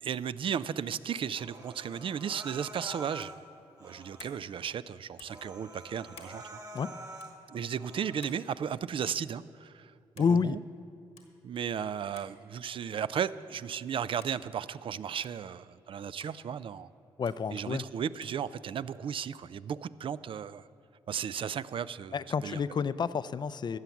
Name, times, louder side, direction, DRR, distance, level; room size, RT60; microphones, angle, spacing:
voice 1, 0.0-3.4 3.8-6.4 7.5-9.9 10.2-10.6 11.4-16.9 17.5-20.6 21.1-22.6, right 8 dB, 55° right, 16 dB, 0.4 m, -35 dB
Human voice, 1.3-3.4 3.8-4.4 4.9-5.0 5.3-7.4 7.8-8.4, right 2 dB, 35° right, 1.8 m, -47 dB
sound 1, 3.2-3.4 4.2-4.4 5.2-5.4 6.1-6.4 7.2-7.3 8.2-8.4 9.2-9.4 10.2-10.4 11.2-11.3 12.2-12.4 13.1-13.4 14.2-14.4 15.2-15.4 16.2-16.4 17.3-17.4 18.2-18.4, left 6 dB, 80° left, 1.5 m, -53 dB
voice 2, 10.2-10.6 17.2-17.8 22.1-23.8, left 6 dB, 45° left, 16 dB, 0.4 m, -29 dB
13.0 x 7.9 x 7.1 m, 2.5 s
supercardioid pair, 55°, 10 cm